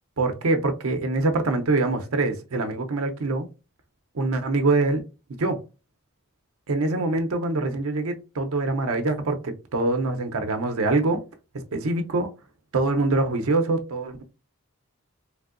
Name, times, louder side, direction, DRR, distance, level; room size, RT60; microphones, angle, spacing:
voice 1, 0.2-3.5 4.1-5.0 5.4-5.6 6.7-11.2 11.7-12.3 12.7-14.2, right 2 dB, 80° right, 0.6 m, -24 dB
3.3 x 2.6 x 2.4 m
head